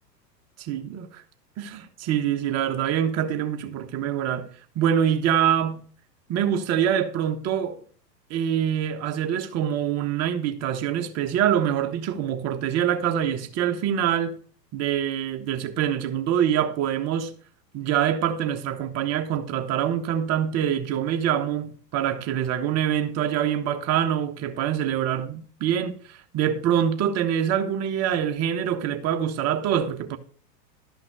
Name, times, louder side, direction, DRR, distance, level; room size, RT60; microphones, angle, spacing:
voice 1, 0.6-1.2 1.6-4.5 4.7-5.8 6.3-7.8 8.3-14.4 14.7-17.3 17.7-30.2, right 9 dB, 30° right, 1.4 m, -25 dB
12.5 x 5.9 x 5.4 m
figure-of-eight pair, 100°, 50 cm